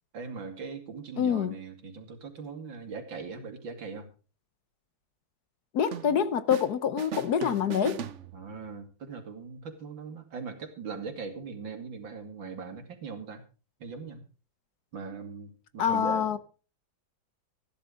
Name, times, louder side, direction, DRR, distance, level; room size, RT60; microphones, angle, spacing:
voice 1, 0.1-4.1 8.3-13.4 13.8-14.2 14.9-16.3, right 5 dB, 75° right, 3.2 m, -40 dB
voice 2, 1.2-1.5 5.7-8.0 15.8-16.4, left 8 dB, 60° left, 1.2 m, -26 dB
sound 1, 5.9-6.7 7.0-8.7, right 8 dB, 60° right, 0.8 m, -39 dB
14.5 x 11.5 x 5.0 m
omnidirectional pair, 2.1 m